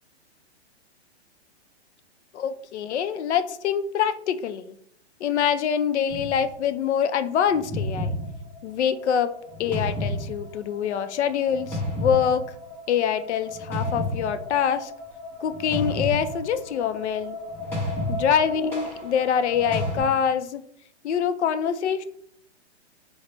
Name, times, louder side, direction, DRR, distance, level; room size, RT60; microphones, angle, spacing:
voice 1, 2.3-4.8 5.2-8.1 8.6-12.5 12.9-14.9 15.4-17.4 18.1-20.6 21.0-22.0, left 8 dB, 80° left, 11 dB, 0.5 m, -25 dB
sound 1, 6.1-6.5 7.5-20.0, left 1 dB, 5° left, 0.4 m, -32 dB
3.7 x 2.1 x 3.3 m, 0.67 s
hypercardioid pair, 145°, 34 cm